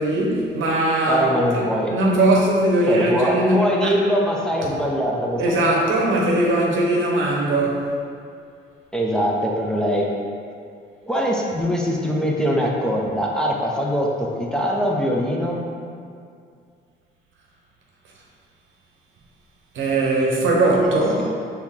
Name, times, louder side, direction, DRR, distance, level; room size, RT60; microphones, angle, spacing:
voice 1, 0.0-1.3 1.5-1.6 1.9-3.9 5.4-7.9 19.7-21.3, right 1 dB, 80° right, -2 dB, 0.9 m, -20 dB
voice 2, 1.1-1.9 2.9-5.4 8.9-10.1 11.1-15.7 20.8-21.3, equal, 5° left, -3 dB, 0.5 m, -22 dB
4.5 x 2.8 x 3.6 m, 2.3 s
cardioid pair, 90°, 20 cm